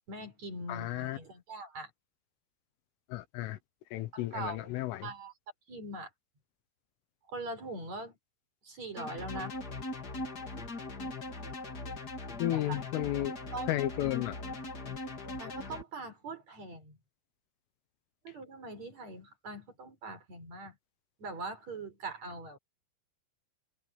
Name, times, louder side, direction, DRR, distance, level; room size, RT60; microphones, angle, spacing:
voice 1, 0.1-1.9 4.1-5.3 5.7-6.1 7.3-8.2 8.6-9.6 12.5-12.8 13.5-13.7 15.4-17.0 18.2-20.8 21.2-22.6, right 2 dB, 35° right, 5.9 m, -42 dB
voice 2, 0.7-1.2 3.1-3.6 3.9-5.1 12.4-13.3 13.7-14.4, left 15 dB, 80° left, 3.5 m, -33 dB
sound 1, 9.0-15.8, left 2 dB, 30° left, 1.9 m, -40 dB
omnidirectional pair, 5.8 m